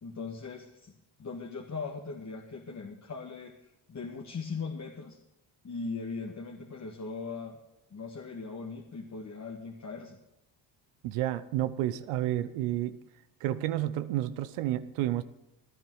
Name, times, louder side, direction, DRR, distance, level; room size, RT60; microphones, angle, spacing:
voice 1, 0.0-0.9 1.2-3.6 3.9-5.2 5.6-7.6 7.9-10.2, left 4 dB, 35° left, 2 dB, 1.7 m, -39 dB
voice 2, 11.0-13.0 13.4-15.2, right 13 dB, 85° right, 13 dB, 0.9 m, -30 dB
17.5 x 10.5 x 4.7 m, 0.90 s
supercardioid pair, 75°, 49 cm